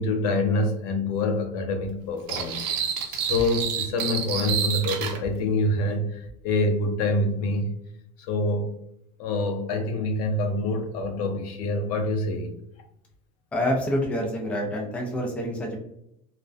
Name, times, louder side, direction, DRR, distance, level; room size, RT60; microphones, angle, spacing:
voice 1, 0.0-7.7 8.2-8.7 9.2-12.5, left 2 dB, 80° left, 5 dB, 0.6 m, -26 dB
sound 1, 2.3-5.2, right 8 dB, 80° right, 0.5 m, -29 dB
voice 2, 13.5-15.8, equal, 5° left, -1 dB, 0.3 m, -27 dB
2.4 x 2.1 x 2.4 m, 0.77 s
cardioid pair, 160°, 20 cm